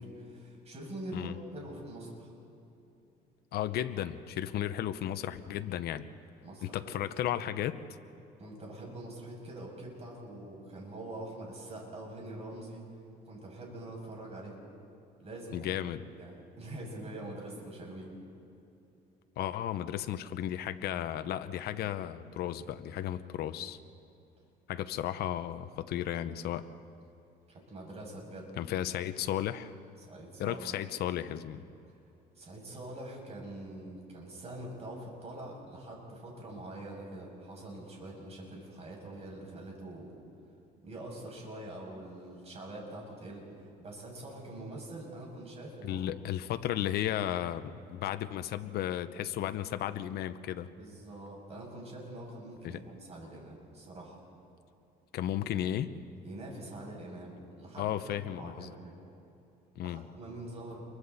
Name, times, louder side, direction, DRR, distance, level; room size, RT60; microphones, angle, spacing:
voice 1, 0.0-2.3 6.4-7.0 8.4-12.8 13.3-14.6 15.2-15.7 16.2-18.1 27.5-28.5 30.0-30.7 32.4-40.1 40.8-46.0 50.8-54.2 56.2-58.9 59.8-60.8, right 1 dB, 40° right, -1 dB, 7.0 m, -44 dB
voice 2, 3.5-6.1 6.6-7.8 15.5-16.0 19.4-23.8 24.7-26.7 28.6-29.7 30.4-31.6 45.8-50.7 52.6-52.8 55.1-55.9 57.8-58.7 59.8-60.0, left 11 dB, 70° left, 10 dB, 0.9 m, -34 dB
29.0 x 23.5 x 4.2 m, 2.8 s
cardioid pair, 110°, 17 cm